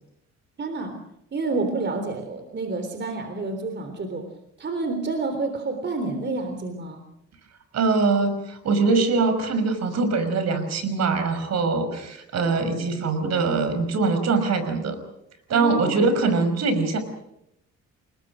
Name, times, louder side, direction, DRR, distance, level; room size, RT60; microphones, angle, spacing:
voice 1, 0.6-1.0 1.3-4.3 4.6-7.0 15.5-16.0, right 3 dB, 40° right, 6 dB, 3.6 m, -29 dB
voice 2, 7.7-15.0 15.5-17.0, right 4 dB, 60° right, 10 dB, 5.6 m, -23 dB
29.0 x 20.0 x 6.4 m, 0.80 s
cardioid pair, 90°, 29 cm